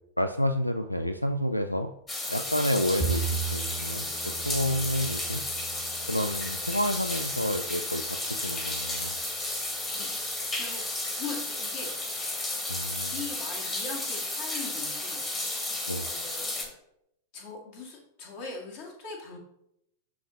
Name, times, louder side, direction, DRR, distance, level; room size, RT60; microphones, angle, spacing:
voice 1, 0.2-1.9 2.3-5.4 6.1-9.2 12.7-13.2 15.9-16.1, equal, 90° left, 8 dB, 0.3 m, -29 dB
sound 1, 2.1-16.6, left 2 dB, 20° left, 1.7 m, -33 dB
Bowed string instrument, 3.0-9.3, right 6 dB, 5° right, 0.9 m, -37 dB
voice 2, 11.1-11.9 13.1-15.2 16.0-16.7 17.3-19.4, left 4 dB, 45° left, -1 dB, 2.1 m, -40 dB
11.0 x 3.9 x 2.9 m, 0.80 s
figure-of-eight pair, 90°, 0 cm